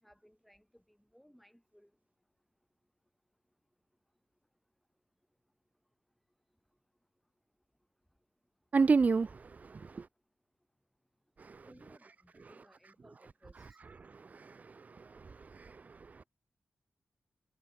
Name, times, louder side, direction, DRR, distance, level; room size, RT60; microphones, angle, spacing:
voice 1, 0.0-1.9 11.4-13.8, equal, ahead, 7.3 m, -62 dB
voice 2, 8.7-10.1 11.4-11.7 14.0-16.2, right 4 dB, 40° right, 0.5 m, -32 dB
wide cardioid pair, 95°, 4 cm